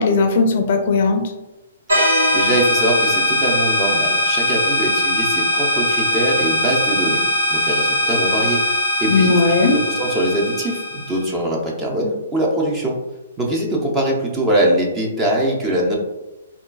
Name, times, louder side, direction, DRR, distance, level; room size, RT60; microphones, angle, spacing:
voice 1, 0.0-1.3 9.0-9.7, left 3 dB, 50° left, 5 dB, 0.4 m, -17 dB
sound 1, 1.9-11.3, left 1 dB, 85° right, 1.3 m, -20 dB
voice 2, 2.3-7.2 7.5-13.0 13.4-15.9, right 1 dB, 15° right, -1 dB, 0.6 m, -22 dB
3.7 x 2.3 x 2.2 m, 1.0 s
hypercardioid pair, 150°, 0 cm